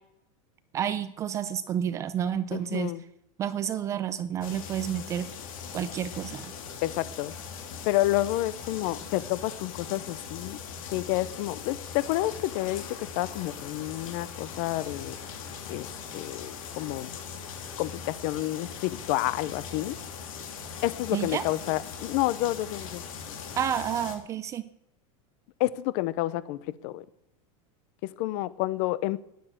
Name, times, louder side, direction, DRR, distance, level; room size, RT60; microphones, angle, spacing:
voice 1, 0.7-2.9 3.4-5.3 5.7-6.5 21.1-21.4 23.6-24.7, right 9 dB, 15° right, 0.4 m, -30 dB
voice 2, 2.5-3.0 6.8-7.3 7.9-10.6 10.9-15.1 15.7-15.9 16.1-17.1 17.8-20.0 20.8-23.0 25.6-27.0 28.0-29.2, left 16 dB, 40° left, 0.6 m, -29 dB
sound 1, 4.4-24.2, left 6 dB, 80° left, 3.1 m, -40 dB
10.0 x 10.0 x 8.8 m
supercardioid pair, 175°, 17 cm